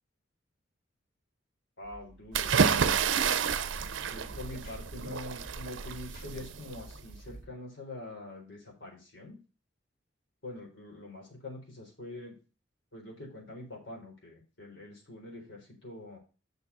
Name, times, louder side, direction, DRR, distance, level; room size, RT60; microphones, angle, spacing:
voice 1, 1.8-3.1 4.1-9.4 10.4-12.4 12.9-16.2, left 2 dB, 75° left, -1 dB, 4.1 m, -45 dB
sound 1, 1.8-7.5, right 2 dB, 50° left, 2.7 m, -51 dB
sound 2, 2.3-7.2, right 6 dB, 85° right, 0.6 m, -29 dB
6.5 x 4.9 x 6.8 m, 0.33 s
head